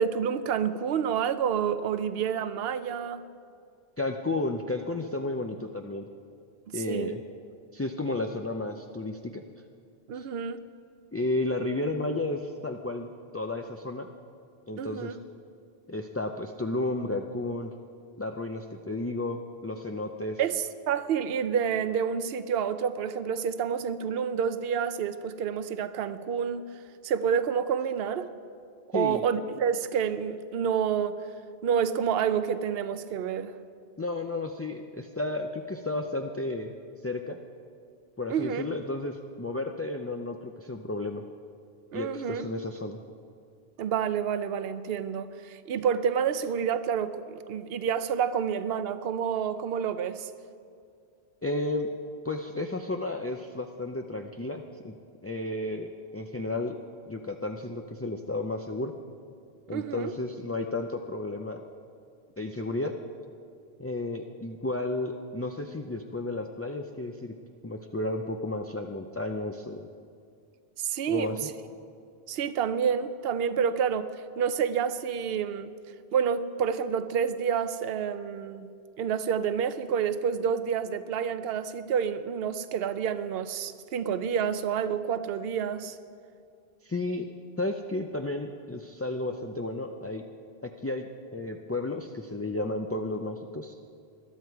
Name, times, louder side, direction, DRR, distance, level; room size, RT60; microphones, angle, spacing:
voice 1, 0.0-3.2 6.7-7.2 10.1-10.6 14.8-15.1 20.4-26.6 27.0-28.3 28.9-31.2 31.6-33.5 38.3-38.6 41.9-42.5 43.8-50.3 59.7-60.1 70.8-71.5 72.3-75.7 76.1-78.7 79.0-86.0, right 7 dB, 65° right, 0.9 m, -29 dB
voice 2, 4.0-6.1 6.7-7.2 7.7-9.4 10.1-10.3 11.1-13.1 13.3-14.1 14.7-15.2 15.9-17.7 18.2-20.4 28.9-29.2 34.0-36.7 37.0-37.4 38.2-41.2 41.9-43.0 51.4-51.9 52.2-54.9 55.2-56.8 57.1-58.9 59.7-61.6 62.4-63.0 63.8-67.3 67.6-69.9 71.1-71.5 86.8-87.3 87.6-90.2 90.6-93.8, left 2 dB, 20° left, 0.4 m, -32 dB
21.0 x 12.5 x 4.7 m
omnidirectional pair, 1.1 m